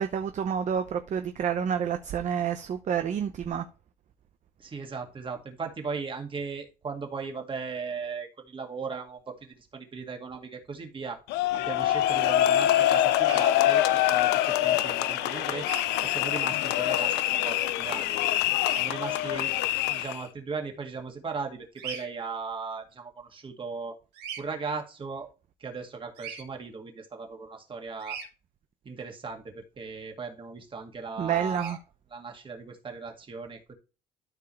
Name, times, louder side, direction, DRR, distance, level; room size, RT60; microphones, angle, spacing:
voice 1, 0.0-3.7 31.2-31.8, right 8 dB, 45° right, 0.7 m, -29 dB
voice 2, 4.6-11.2 11.5-13.8 14.1-15.7 16.0-18.2 18.8-24.0 24.4-25.3 25.6-28.2 28.8-31.8 32.1-33.7, right 4 dB, 30° right, 2.1 m, -37 dB
sound 1, 11.3-20.2, left 13 dB, 90° left, 0.5 m, -25 dB
Bird vocalization bird call bird song, 13.2-13.4 15.6-15.9 18.6-18.8 21.8-22.1 24.1-24.4 26.1-26.4 28.0-28.3 31.5-31.8, right 7 dB, 80° right, 2.5 m, -39 dB
13.0 x 4.7 x 3.2 m
cardioid pair, 110°, 17 cm